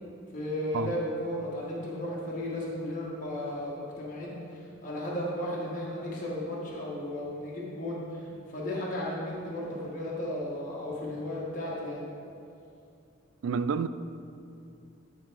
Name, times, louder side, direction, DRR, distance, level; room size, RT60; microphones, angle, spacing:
voice 1, 0.3-3.7 4.0-4.4 4.8-8.0 8.5-12.0, left 1 dB, 40° left, -6 dB, 1.6 m, -34 dB
voice 2, 13.4-13.9, right 5 dB, 70° right, 13 dB, 0.3 m, -28 dB
11.5 x 4.7 x 4.7 m, 2.6 s
head